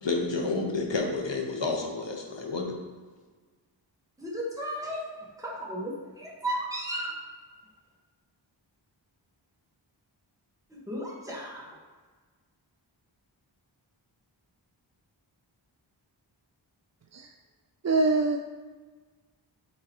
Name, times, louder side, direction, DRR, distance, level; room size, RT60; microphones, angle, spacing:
voice 1, 0.0-2.8, left 3 dB, 65° left, 1 dB, 1.0 m, -30 dB
voice 2, 4.2-5.1 5.4-7.1 10.7-11.8, right 1 dB, 5° right, -4 dB, 1.4 m, -34 dB
voice 3, 17.8-18.4, right 3 dB, 40° right, 3 dB, 0.4 m, -23 dB
8.7 x 3.8 x 3.0 m, 1.4 s
wide cardioid pair, 55°, 47 cm